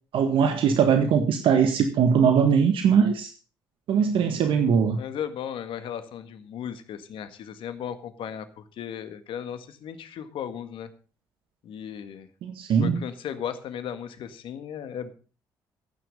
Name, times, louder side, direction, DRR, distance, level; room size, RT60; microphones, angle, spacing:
voice 1, 0.1-3.3 3.9-5.0 12.4-13.0, right 7 dB, 65° right, 1.7 m, -21 dB
voice 2, 5.0-10.9 11.6-12.3 12.8-15.1, left 9 dB, 65° left, 1.8 m, -36 dB
15.5 x 9.3 x 5.3 m
hypercardioid pair, 55°, 9 cm